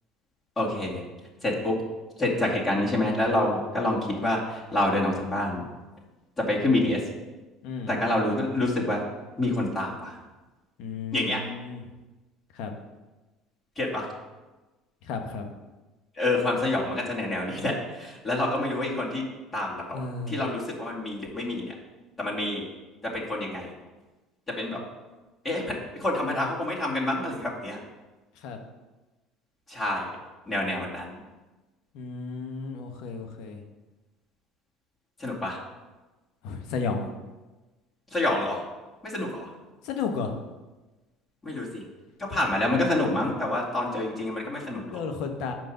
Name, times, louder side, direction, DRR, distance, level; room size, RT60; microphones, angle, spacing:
voice 1, 0.6-1.0 1.4-1.8 2.2-5.7 6.4-7.0 7.9-9.0 9.4-10.2 11.1-11.4 13.8-14.1 16.2-19.2 19.5-21.7 22.2-22.6 23.0-23.7 24.5-24.8 25.4-25.7 26.0-27.8 29.7-30.1 30.5-31.2 35.2-35.6 38.1-38.6 39.0-39.5 41.4-41.8 42.2-45.0, left 1 dB, 25° left, -4 dB, 2.4 m, -27 dB
voice 2, 7.6-8.0 10.8-11.8 12.5-12.7 15.0-15.5 19.9-20.4 28.3-28.6 31.9-33.6 36.4-37.0 39.8-40.4 42.3-42.4 44.9-45.5, left 5 dB, 65° left, 5 dB, 1.1 m, -33 dB
5.7 x 5.3 x 6.6 m, 1.2 s
hypercardioid pair, 70°, 0 cm